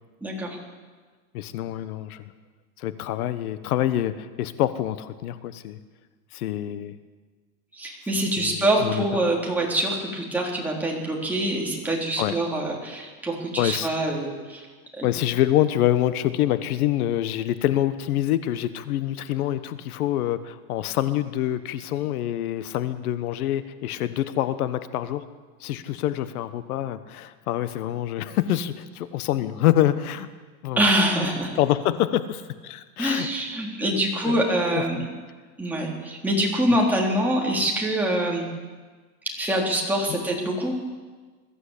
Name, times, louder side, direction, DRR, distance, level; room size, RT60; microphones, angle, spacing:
voice 1, 0.2-0.6 7.7-14.7 14.9-15.1 30.8-31.5 33.0-35.0 35.6-38.5 39.4-40.7, right 1 dB, 5° right, -3 dB, 3.8 m, -25 dB
voice 2, 1.3-2.2 2.8-5.8 6.3-7.0 8.4-9.0 12.2-12.4 13.6-13.9 15.0-25.2 25.6-30.3 30.6-30.8 31.5-33.3 33.9-34.5 34.7-35.0, left 13 dB, 85° left, 12 dB, 1.3 m, -26 dB
21.5 x 14.5 x 8.4 m, 1.4 s
supercardioid pair, 155°, 43 cm